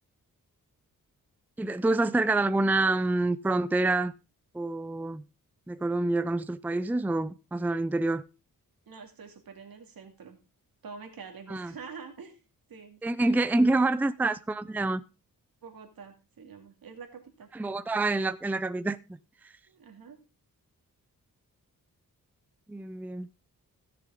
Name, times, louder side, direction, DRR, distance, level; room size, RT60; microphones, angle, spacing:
voice 1, 1.6-4.1 4.5-5.2 5.7-8.2 11.5-11.7 13.0-15.0 17.5-19.0 22.7-23.3, right 2 dB, 5° right, 0.5 m, -27 dB
voice 2, 8.9-10.4 10.8-12.4 12.7-13.8 15.6-17.5 19.7-20.2, right 5 dB, 80° right, 2.6 m, -46 dB
16.0 x 6.9 x 3.7 m
wide cardioid pair, 90°, 35 cm